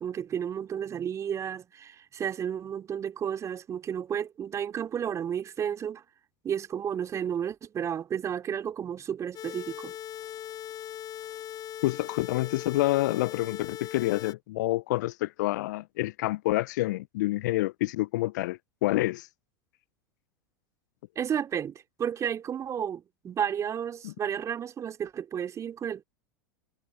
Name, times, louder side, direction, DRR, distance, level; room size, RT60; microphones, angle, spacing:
voice 1, 0.0-6.0 6.4-9.9 21.2-26.0, right 8 dB, 25° right, 2.6 m, -32 dB
sound 1, 9.3-14.3, left 11 dB, 35° left, 4.3 m, -40 dB
voice 2, 11.8-19.3 24.0-24.1, left 18 dB, 60° left, 0.5 m, -28 dB
figure-of-eight pair, 90°, 11 cm